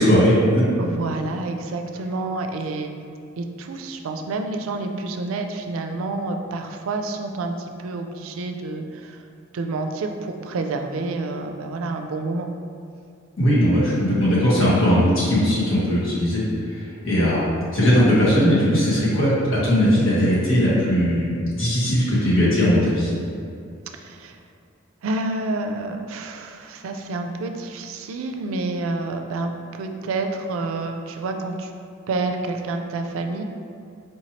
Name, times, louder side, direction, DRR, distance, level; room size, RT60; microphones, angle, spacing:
voice 1, 0.0-0.6 13.4-16.4 16.7-17.4 17.7-23.1, equal, 90° left, -9 dB, 1.5 m, -19 dB
voice 2, 0.8-2.9 3.4-9.2 9.5-12.5 23.9-24.4 25.0-31.7 32.1-33.4, right 3 dB, 85° right, 5 dB, 0.4 m, -28 dB
4.4 x 3.1 x 2.8 m, 2.4 s
head